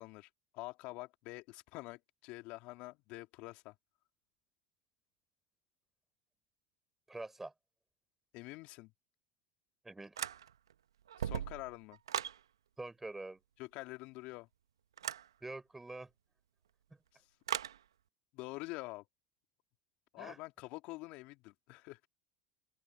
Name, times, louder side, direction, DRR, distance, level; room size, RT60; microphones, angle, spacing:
voice 1, 0.0-3.7 8.3-8.9 11.2-12.0 13.6-14.5 18.3-19.0 20.1-22.1, left 22 dB, 60° left, 3.1 m, -46 dB
voice 2, 7.1-7.5 9.8-10.2 12.8-13.4 15.4-16.1 20.2-20.4, right 2 dB, 10° right, 4.6 m, -45 dB
sound 1, 10.2-10.7 11.1-12.4 15.0-15.3 17.5-17.8, right 9 dB, 85° right, 1.2 m, -38 dB
open air
hypercardioid pair, 80°, 2 cm